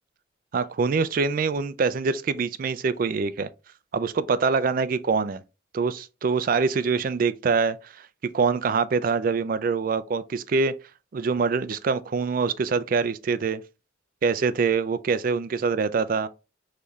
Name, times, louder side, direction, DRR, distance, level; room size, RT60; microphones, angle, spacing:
voice 1, 0.5-3.5 3.9-5.4 5.7-8.1 8.3-10.7 11.1-13.6 14.2-16.3, right 5 dB, 45° right, 0.3 m, -24 dB
5.4 x 3.2 x 2.3 m
head